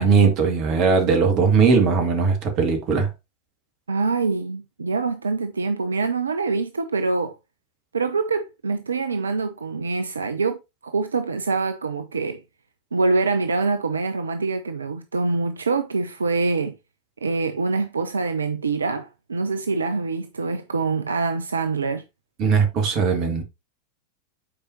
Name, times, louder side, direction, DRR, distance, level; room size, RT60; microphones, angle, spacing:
voice 1, 0.0-3.1 22.4-23.4, right 5 dB, 40° right, 2.1 m, -19 dB
voice 2, 3.9-7.4 7.9-12.4 12.9-16.8 17.2-22.0, right 4 dB, 75° right, 0.5 m, -25 dB
8.8 x 4.8 x 2.8 m
figure-of-eight pair, 90°, 0 cm